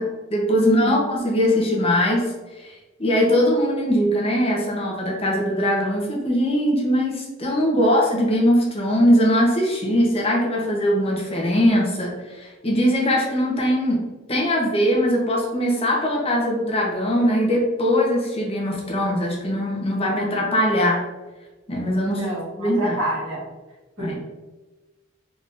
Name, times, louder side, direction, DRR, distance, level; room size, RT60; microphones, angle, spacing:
voice 1, 0.0-2.2 2.6-2.7 3.0-14.0 14.3-21.0 21.7-22.2 22.6-23.0 24.0-24.1, equal, 30° left, -2 dB, 0.8 m, -21 dB
voice 2, 22.0-23.5 24.0-24.2, right 1 dB, 75° right, -5 dB, 1.3 m, -28 dB
3.7 x 3.4 x 2.5 m, 1.2 s
head